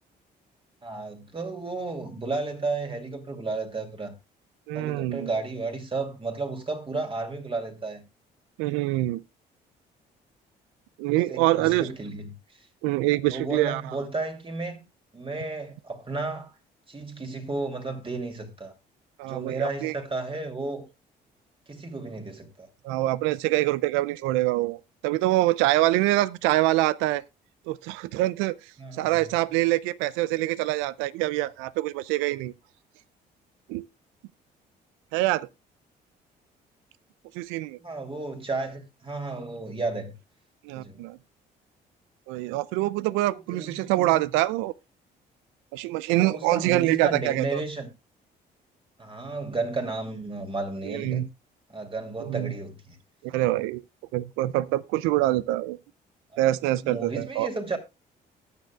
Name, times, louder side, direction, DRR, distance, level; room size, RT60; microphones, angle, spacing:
voice 1, 0.8-4.1 4.7-8.0 11.1-12.7 13.3-14.8 15.1-16.5 16.9-18.7 19.2-20.8 21.7-22.7 28.8-29.3 37.8-40.1 40.7-41.0 43.1-44.3 46.2-47.9 49.0-51.3 51.7-53.0 56.8-57.8, right 3 dB, 25° right, 2.6 m, -33 dB
voice 2, 4.7-5.3 8.6-9.2 11.0-11.9 12.8-13.8 19.2-19.9 22.8-27.2 27.7-28.6 29.0-32.5 33.7-33.9 35.1-35.5 37.3-37.8 40.6-41.2 42.3-44.7 45.7-47.6 50.8-51.3 52.2-52.5 53.2-53.8 54.1-55.8 56.4-57.5, right 17 dB, 85° right, 0.4 m, -25 dB
19.0 x 6.7 x 2.3 m
supercardioid pair, 60°, 20 cm